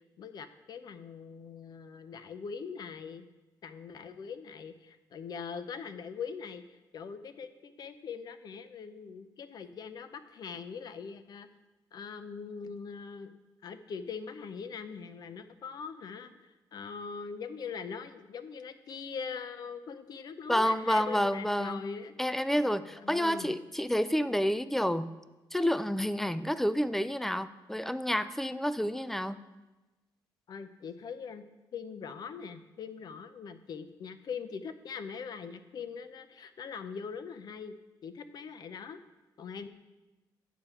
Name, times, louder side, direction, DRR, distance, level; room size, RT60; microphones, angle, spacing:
voice 1, 0.2-3.3 3.6-11.5 11.9-13.3 13.6-22.1 22.9-23.6 30.5-31.5 31.7-37.7 38.0-39.0 39.4-39.7, left 6 dB, 55° left, 11 dB, 0.6 m, -42 dB
voice 2, 20.5-21.9 22.2-25.1 25.5-29.4, equal, 5° left, 14 dB, 0.3 m, -29 dB
9.1 x 6.9 x 4.3 m, 1.1 s
cardioid pair, 125°, 8 cm